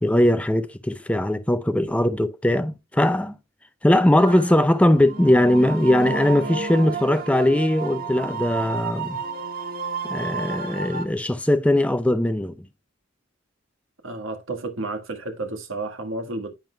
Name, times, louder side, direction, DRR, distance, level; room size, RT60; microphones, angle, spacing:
voice 1, 0.0-3.3 3.8-9.2 10.1-12.5, left 1 dB, 5° left, 0.5 m, -20 dB
sound 1, 4.2-11.0, right 4 dB, 45° right, 1.6 m, -31 dB
voice 2, 14.0-16.5, right 2 dB, 70° right, 1.6 m, -31 dB
10.5 x 7.5 x 2.3 m
head